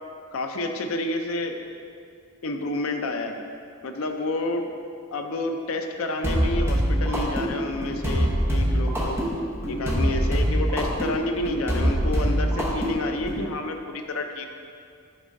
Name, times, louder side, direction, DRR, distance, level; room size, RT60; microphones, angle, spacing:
voice 1, 0.3-1.6 2.4-3.4 3.8-4.7 5.1-9.2 9.7-14.5, left 2 dB, 80° left, 5 dB, 0.5 m, -29 dB
sound 1, 6.2-13.4, equal, 10° right, 0.9 m, -24 dB
6.0 x 3.6 x 5.2 m, 2.3 s
head